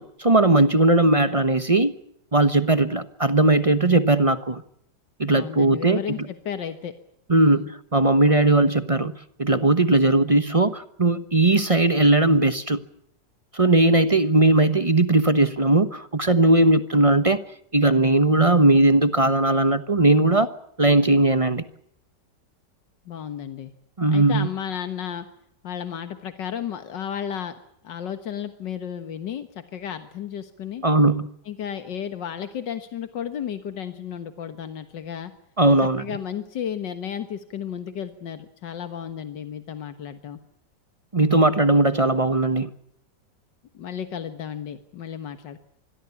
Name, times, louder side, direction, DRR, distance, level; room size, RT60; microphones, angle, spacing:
voice 1, 0.0-2.0 2.3-4.6 5.2-6.0 7.3-9.1 9.4-12.8 13.5-17.4 17.7-20.5 20.8-21.6 24.0-24.5 30.8-31.3 35.6-36.0 41.1-42.7, right 2 dB, 25° right, 12 dB, 0.9 m, -18 dB
voice 2, 5.2-6.9 7.3-7.7 23.1-23.7 24.1-25.3 25.6-27.6 27.8-30.9 31.5-35.3 36.0-40.4 43.7-45.6, left 8 dB, 90° left, 9 dB, 2.1 m, -33 dB
26.0 x 21.0 x 7.1 m, 0.72 s
omnidirectional pair, 1.9 m